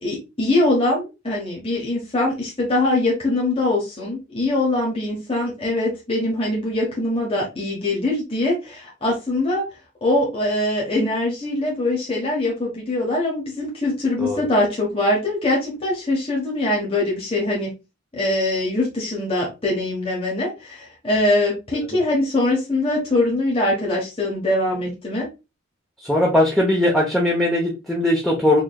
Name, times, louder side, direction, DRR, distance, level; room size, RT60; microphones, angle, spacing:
voice 1, 0.0-9.7 10.0-17.7 18.1-25.3, left 2 dB, 30° left, -3 dB, 1.3 m, -22 dB
voice 2, 26.0-28.6, left 1 dB, ahead, -4 dB, 0.8 m, -19 dB
4.9 x 3.1 x 2.3 m, 0.26 s
head